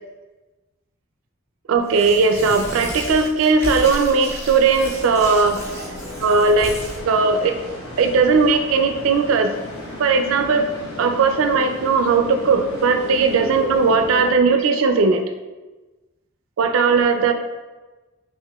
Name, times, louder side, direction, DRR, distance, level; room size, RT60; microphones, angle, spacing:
voice 1, 1.7-5.8 6.2-6.8 7.1-7.6 8.0-9.5 10.0-10.7 11.0-15.2 16.6-17.3, right 4 dB, 75° right, 7 dB, 0.3 m, -18 dB
Tearing, 1.8-7.0, equal, 10° left, 0.6 m, -33 dB
sound 1, 4.6-14.3, left 2 dB, 75° left, 1.0 m, -34 dB
4.7 x 2.5 x 2.2 m, 1.2 s
head